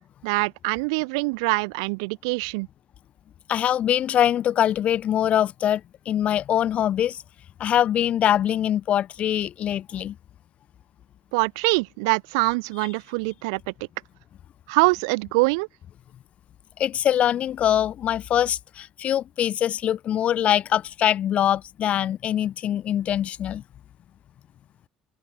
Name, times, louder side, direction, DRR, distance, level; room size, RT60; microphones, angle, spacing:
voice 1, 0.2-2.7 11.3-13.7 14.7-15.7, right 29 dB, 75° right, 0.8 m, -24 dB
voice 2, 3.5-7.2 7.6-10.2 16.8-23.6, left 10 dB, 55° left, 0.7 m, -23 dB
open air
hypercardioid pair, 60°, 3 cm